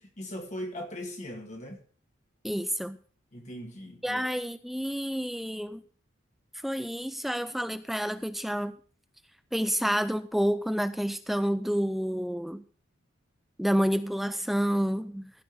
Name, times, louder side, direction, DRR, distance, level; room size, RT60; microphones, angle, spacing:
voice 1, 0.0-1.8 3.3-4.2, equal, 35° left, 2.1 m, -39 dB
voice 2, 2.4-3.0 4.0-5.8 6.6-8.8 9.5-12.6 13.6-15.3, equal, ahead, 0.4 m, -29 dB
15.5 x 5.4 x 6.8 m
head